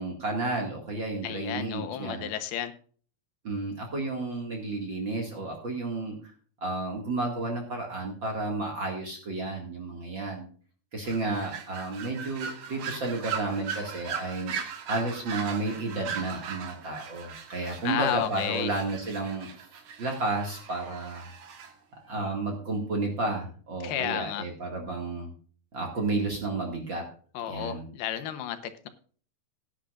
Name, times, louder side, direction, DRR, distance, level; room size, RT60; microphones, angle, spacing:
voice 1, 0.0-2.3 3.4-6.1 6.6-10.5 10.9-14.5 14.9-19.5 20.0-21.3 22.1-25.3 25.7-27.0 27.5-27.8, right 2 dB, 40° right, 1 dB, 2.1 m, -32 dB
voice 2, 1.2-2.7 17.8-18.7 23.8-24.4 27.3-28.9, left 11 dB, 90° left, 9 dB, 2.9 m, -32 dB
sound 1, 11.0-21.7, right 7 dB, 60° right, 2.5 m, -39 dB
17.5 x 9.9 x 2.5 m, 0.44 s
omnidirectional pair, 4.4 m